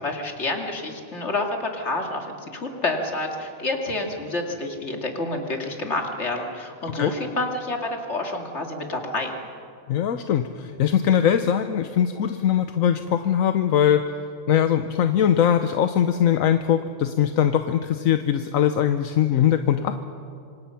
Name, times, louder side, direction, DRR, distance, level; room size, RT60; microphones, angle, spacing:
voice 1, 0.0-9.3, left 2 dB, 55° left, 2 dB, 2.6 m, -28 dB
voice 2, 9.9-14.0 14.5-20.0, left 9 dB, 80° left, 8 dB, 1.2 m, -21 dB
26.0 x 25.5 x 5.8 m, 2.4 s
omnidirectional pair, 1.4 m